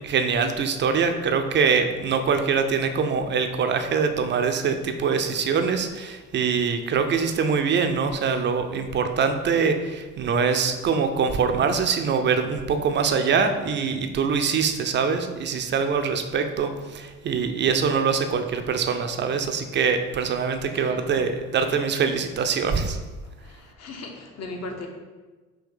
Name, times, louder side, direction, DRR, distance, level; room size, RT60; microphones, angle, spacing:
voice 1, 0.0-23.0, right 5 dB, 30° right, 7 dB, 0.5 m, -24 dB
voice 2, 20.7-21.3 23.4-24.9, left 2 dB, 40° left, 3 dB, 0.9 m, -38 dB
5.4 x 2.7 x 3.6 m, 1.3 s
figure-of-eight pair, 55°, 39 cm